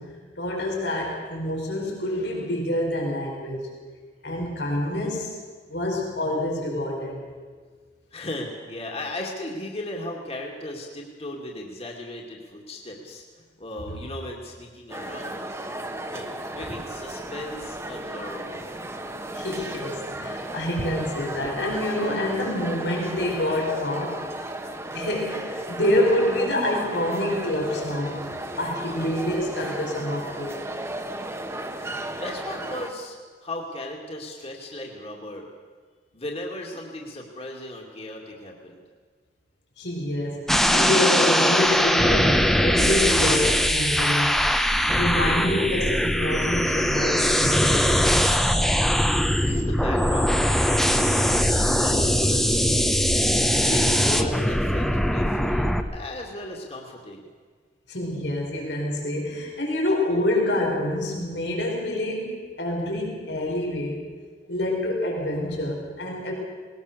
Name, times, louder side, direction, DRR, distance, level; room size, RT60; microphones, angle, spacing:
voice 1, 0.0-3.7 4.2-5.3 5.7-7.2 19.3-24.3 24.9-30.7 39.8-48.2 57.9-64.0 64.5-66.3, left 1 dB, 90° left, -1 dB, 5.0 m, -27 dB
voice 2, 8.1-15.5 16.1-16.3 16.5-18.7 28.4-28.6 32.1-33.2 33.4-35.5 36.1-38.8 49.4-53.0 53.6-57.3, left 1 dB, 35° left, 0 dB, 2.5 m, -36 dB
sound 1, 14.9-32.9, right 1 dB, 15° right, 1.3 m, -34 dB
sound 2, 40.5-55.8, equal, 5° left, 1.0 m, -21 dB
20.5 x 19.0 x 6.9 m, 1.5 s
head